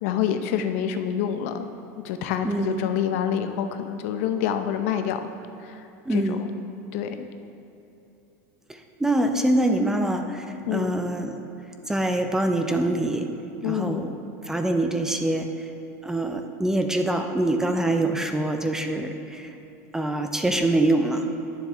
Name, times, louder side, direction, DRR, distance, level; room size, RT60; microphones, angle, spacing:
voice 1, 0.0-1.7 2.0-5.2 5.6-5.8 6.1-6.5 6.9-7.3 10.6-11.0 13.6-14.1, left 9 dB, 65° left, 8 dB, 0.6 m, -27 dB
voice 2, 2.4-2.9 6.1-6.4 8.7-11.4 11.9-13.3 13.6-14.2 14.4-15.7 16.0-19.5 19.9-21.3, right 1 dB, 5° right, 5 dB, 0.4 m, -24 dB
10.5 x 7.0 x 3.4 m, 2.8 s
supercardioid pair, 150°, 8 cm